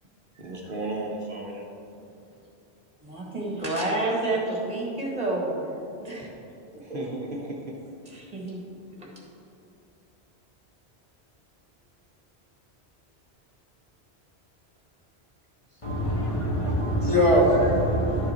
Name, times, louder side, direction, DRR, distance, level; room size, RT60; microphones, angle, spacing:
voice 1, 0.3-1.7 6.8-7.8 15.7-15.8, right 2 dB, 55° right, 1.1 m, -34 dB
voice 2, 3.0-6.3 6.9-7.0 8.1-8.6 9.0-9.1, right 2 dB, 35° right, 1.8 m, -29 dB
voice 3, 15.8-18.3, equal, 30° left, 1.5 m, -22 dB
11.5 x 6.5 x 4.3 m
omnidirectional pair, 1.1 m